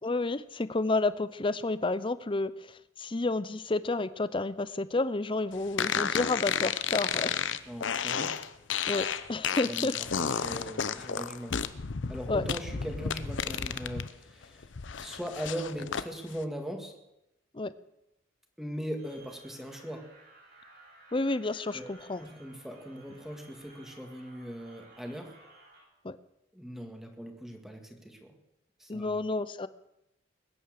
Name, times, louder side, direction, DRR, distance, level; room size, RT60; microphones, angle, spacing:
voice 1, 0.0-7.4 8.9-9.9 12.3-12.4 17.5-17.7 21.1-22.2 26.0-26.2 28.9-29.7, left 2 dB, 25° left, 15 dB, 0.6 m, -30 dB
sound 1, 5.8-14.1 14.4-16.1, left 7 dB, 70° left, 0.8 m, -32 dB
voice 2, 7.7-8.4 9.7-11.6 12.1-14.7 15.0-16.9 18.6-20.1 21.7-21.9 22.2-25.3 26.5-28.4 28.8-29.2, equal, ahead, 4 dB, 2.0 m, -40 dB
sound 2, 19.0-25.8, right 2 dB, 55° right, 7.4 m, -57 dB
21.0 x 9.9 x 6.6 m, 0.88 s
head